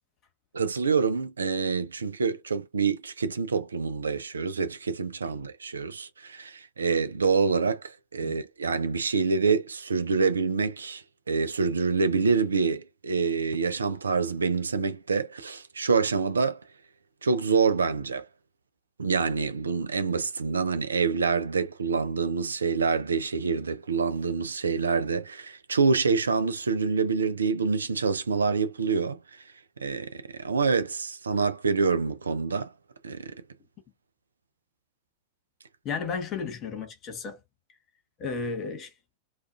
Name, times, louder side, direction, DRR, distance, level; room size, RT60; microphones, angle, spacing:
voice 1, 0.5-16.6 17.2-18.3 19.0-29.4 29.8-32.7 33.0-33.3, right 4 dB, 80° right, 0.3 m, -26 dB
voice 2, 35.8-37.4 38.2-38.9, left 5 dB, 35° left, 1.1 m, -33 dB
2.4 x 2.3 x 2.3 m
figure-of-eight pair, 90°, 0 cm